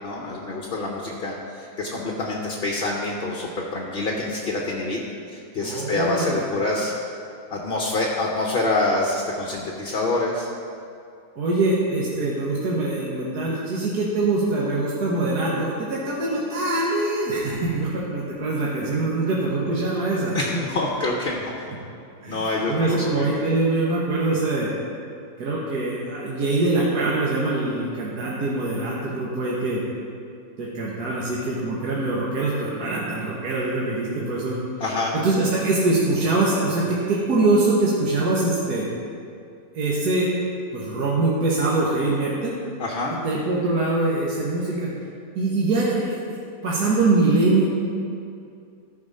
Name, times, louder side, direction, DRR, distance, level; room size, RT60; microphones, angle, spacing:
voice 1, 0.0-5.0 5.3-6.9 7.5-10.5 20.3-21.5 22.3-23.3 34.8-35.1 42.8-43.1, left 2 dB, 45° left, -1 dB, 0.9 m, -26 dB
voice 2, 5.6-6.4 11.4-20.4 22.2-24.7 25.4-29.8 30.6-34.6 35.1-38.9 39.7-40.3 40.7-42.6 43.2-44.9 45.4-46.4 46.6-47.7, right 2 dB, 75° right, -5 dB, 1.7 m, -23 dB
13.5 x 4.9 x 5.4 m, 2.4 s
omnidirectional pair, 1.7 m